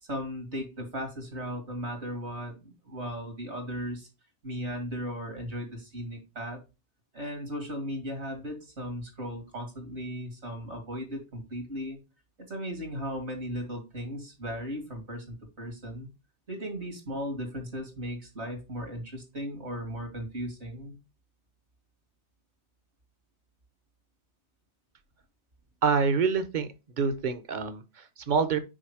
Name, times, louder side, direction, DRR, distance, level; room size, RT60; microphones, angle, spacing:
voice 1, 0.0-4.1 4.4-6.6 7.1-12.0 12.4-16.1 16.5-20.9, equal, 70° right, 4 dB, 2.6 m, -36 dB
voice 2, 25.8-26.7 27.0-28.6, right 5 dB, 45° right, 11 dB, 0.9 m, -26 dB
6.3 x 5.0 x 4.8 m, 0.28 s
omnidirectional pair, 1.2 m